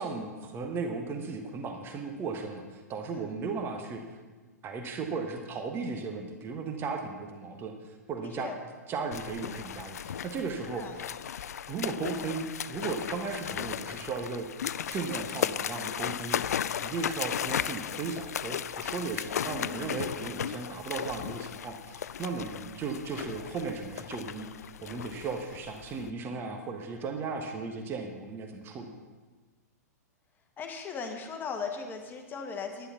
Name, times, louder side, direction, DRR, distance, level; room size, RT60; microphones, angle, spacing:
voice 1, 0.0-4.0 4.6-7.7 8.1-8.5 8.9-10.9 11.7-14.5 14.9-16.4 16.8-24.5 24.8-28.9, right 4 dB, 25° right, 4 dB, 1.4 m, -36 dB
voice 2, 8.2-8.6 10.7-11.1 19.4-20.1 30.6-32.9, left 5 dB, 20° left, 4 dB, 1.4 m, -39 dB
sound 1, 9.1-26.1, left 9 dB, 65° left, 0.4 m, -36 dB
10.5 x 10.5 x 5.7 m, 1.3 s
figure-of-eight pair, 105°, 9 cm